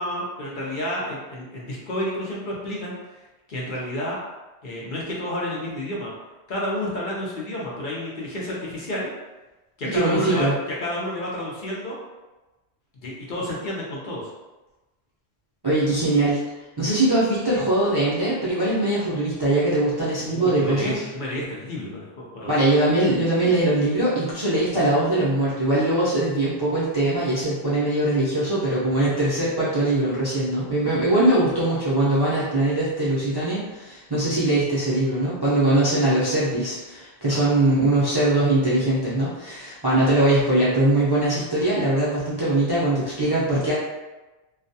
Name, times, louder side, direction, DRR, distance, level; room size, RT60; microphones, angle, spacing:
voice 1, 0.0-3.0 3.5-4.2 4.6-6.1 6.5-9.1 9.8-10.5 10.8-12.0 13.0-14.3 20.3-22.1 22.3-22.6 28.9-29.1 37.3-37.4, left 1 dB, 60° left, -5 dB, 0.7 m, -30 dB
voice 2, 9.9-10.5 15.6-16.4 16.8-21.0 22.5-43.7, right 1 dB, 30° right, -10 dB, 0.4 m, -21 dB
2.3 x 2.2 x 2.6 m, 1.1 s
omnidirectional pair, 1.1 m